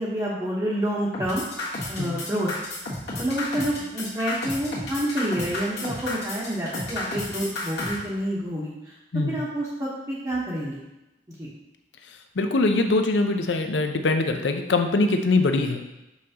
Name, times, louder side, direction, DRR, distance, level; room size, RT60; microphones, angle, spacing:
voice 1, 0.0-1.4 1.9-2.5 3.2-8.7 9.1-10.8 11.4-11.5, equal, 20° right, -9 dB, 1.0 m, -28 dB
sound 1, 1.1-8.0, left 2 dB, 65° left, 1.6 m, -32 dB
voice 2, 12.4-15.8, left 2 dB, 85° left, 6 dB, 0.6 m, -22 dB
6.3 x 5.6 x 2.9 m, 0.95 s
head